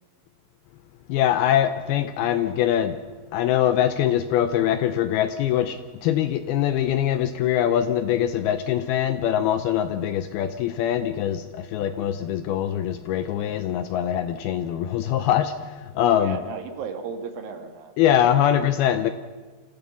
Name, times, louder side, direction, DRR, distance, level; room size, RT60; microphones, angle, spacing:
voice 1, 1.1-3.0 3.3-16.4 18.0-19.1, left 10 dB, 80° left, 10 dB, 2.3 m, -23 dB
voice 2, 16.2-18.2 18.5-18.6, right 5 dB, 60° right, 6 dB, 3.1 m, -35 dB
26.5 x 15.0 x 7.0 m, 1.4 s
omnidirectional pair, 5.1 m